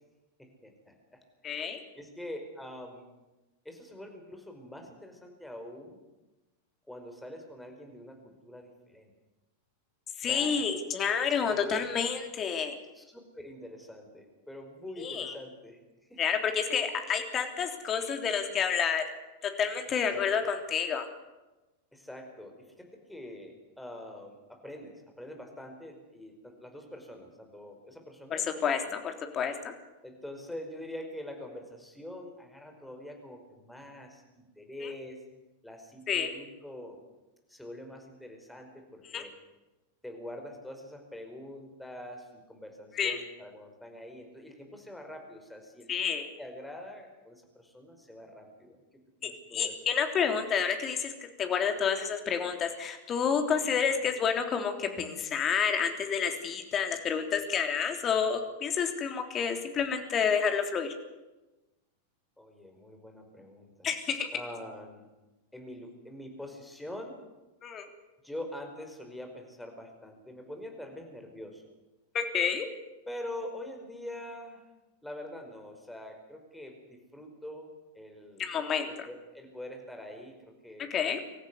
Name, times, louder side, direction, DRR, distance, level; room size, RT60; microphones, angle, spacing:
voice 1, 0.4-3.0 3.6-6.0 6.9-9.1 10.2-10.7 11.3-11.9 12.9-15.8 16.1-16.2 18.2-18.5 19.5-19.6 20.1-20.2 21.9-28.7 30.0-35.2 35.6-37.0 37.5-39.3 40.0-46.1 46.4-48.8 49.2-49.7 53.8-53.9 62.4-63.9 64.3-65.1 65.5-67.2 68.2-71.6 73.1-74.6 75.0-77.7 77.9-78.5 79.0-80.9, left 1 dB, 5° left, 3 dB, 5.1 m, -45 dB
voice 2, 1.4-1.8 10.2-12.7 15.0-15.3 16.2-19.0 19.4-21.1 28.3-29.7 34.8-34.9 36.1-36.3 39.1-39.2 42.9-43.2 45.9-46.3 49.2-60.9 63.8-64.3 67.6-67.9 72.1-72.6 78.4-79.1 80.9-81.2, left 7 dB, 25° left, 5 dB, 3.4 m, -29 dB
25.0 x 14.5 x 9.6 m, 1.1 s
figure-of-eight pair, 90°, 0 cm